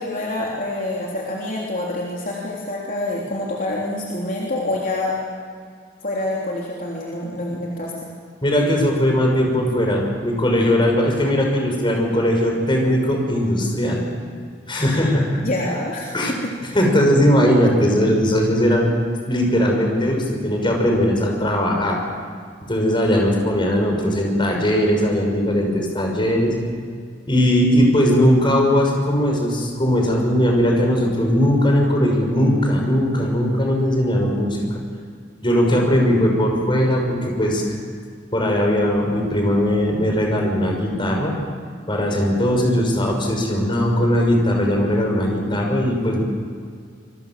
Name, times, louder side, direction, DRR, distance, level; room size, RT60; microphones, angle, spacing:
voice 1, 0.0-5.2 6.0-8.1 15.4-16.1, left 2 dB, 50° left, -4 dB, 3.5 m, -26 dB
voice 2, 8.4-14.0 14.7-15.4 16.1-16.3 16.7-18.9 19.3-22.0 22.6-26.5 27.3-34.6 35.4-37.6 38.3-41.3 41.9-46.2, equal, 25° left, 1 dB, 6.2 m, -19 dB
27.0 x 23.5 x 7.6 m, 2.1 s
head